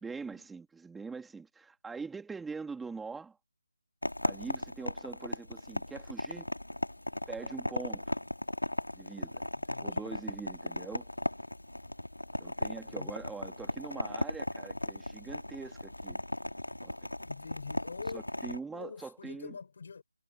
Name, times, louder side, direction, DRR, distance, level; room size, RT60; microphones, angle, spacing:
voice 1, 0.0-3.4 4.2-6.5 7.3-8.1 8.9-9.4 9.8-11.1 12.4-16.2 16.8-17.1 18.1-19.5, right 4 dB, 5° right, 2.6 m, -43 dB
sound 1, 4.0-18.6, left 1 dB, 85° left, 4.7 m, -37 dB
voice 2, 9.6-10.3 12.7-13.3 17.2-18.2 18.7-20.0, left 5 dB, 45° left, 5.7 m, -45 dB
figure-of-eight pair, 155°, 0 cm